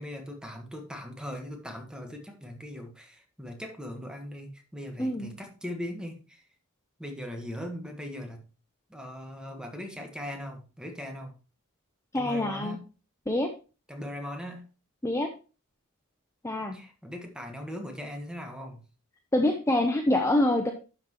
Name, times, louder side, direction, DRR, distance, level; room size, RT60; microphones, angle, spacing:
voice 1, 0.0-6.4 7.0-8.4 8.9-11.3 12.1-12.8 13.9-14.7 16.7-18.8, equal, 5° right, 4 dB, 1.4 m, -39 dB
voice 2, 12.1-12.8 13.3-13.5 15.0-15.3 16.4-16.8 19.3-20.7, left 1 dB, 15° left, 4 dB, 0.7 m, -25 dB
11.5 x 5.9 x 3.0 m, 0.33 s
head